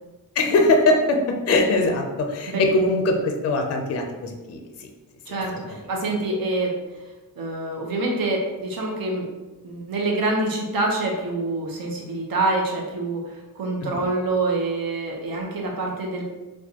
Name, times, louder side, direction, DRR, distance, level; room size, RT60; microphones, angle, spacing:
voice 1, 0.4-4.9 5.3-5.6 13.8-14.0, left 2 dB, 40° left, 3 dB, 0.4 m, -22 dB
voice 2, 5.3-6.7 7.4-9.3 9.6-16.2, right 2 dB, 70° right, 0 dB, 0.9 m, -26 dB
4.4 x 2.3 x 2.8 m, 1.2 s
wide cardioid pair, 140°, 37 cm